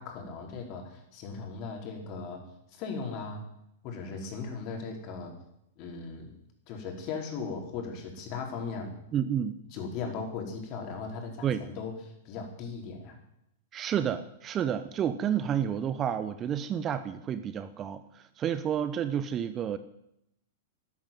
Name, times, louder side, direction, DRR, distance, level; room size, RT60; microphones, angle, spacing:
voice 1, 0.0-2.4 2.7-3.4 3.8-5.3 5.8-6.3 6.7-8.9 9.7-12.0 12.2-13.2, left 4 dB, 40° left, 2 dB, 4.8 m, -38 dB
voice 2, 9.1-9.6 11.4-11.6 13.7-19.8, right 9 dB, 25° right, 13 dB, 0.9 m, -30 dB
13.0 x 12.0 x 9.2 m, 0.80 s
figure-of-eight pair, 100°, 0 cm